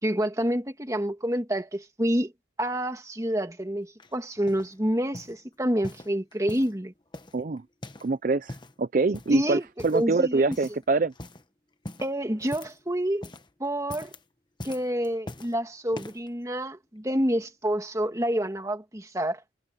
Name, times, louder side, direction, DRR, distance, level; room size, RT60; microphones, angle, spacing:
voice 1, 0.0-2.3 2.6-6.9 9.3-9.6 9.9-10.6 12.0-13.3 13.6-14.1 14.6-19.4, equal, 15° right, 2.0 m, -28 dB
sound 1, 4.0-4.7 5.1-5.4 5.8-6.8 7.1-8.1 8.4-8.8 9.1-9.4 9.8-10.2 10.5-10.8 11.1-11.4 11.8-12.9 13.1-13.5 13.8-14.2 14.6-15.5 15.9-16.3 17.0-17.1, left 1 dB, 25° left, 1.1 m, -42 dB
voice 2, 7.3-7.6 8.0-11.1, right 3 dB, 45° right, 0.5 m, -25 dB
head